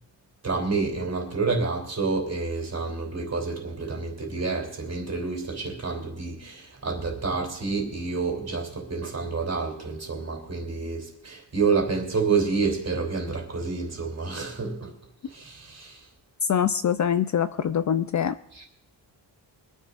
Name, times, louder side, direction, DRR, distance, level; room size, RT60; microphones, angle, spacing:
voice 1, 0.4-14.9 15.2-16.1 18.5-18.7, right 4 dB, 35° right, 3.3 m, -28 dB
voice 2, 16.4-18.4, left 8 dB, 45° left, 0.5 m, -24 dB
24.5 x 10.0 x 2.5 m
cardioid pair, 120°, 42 cm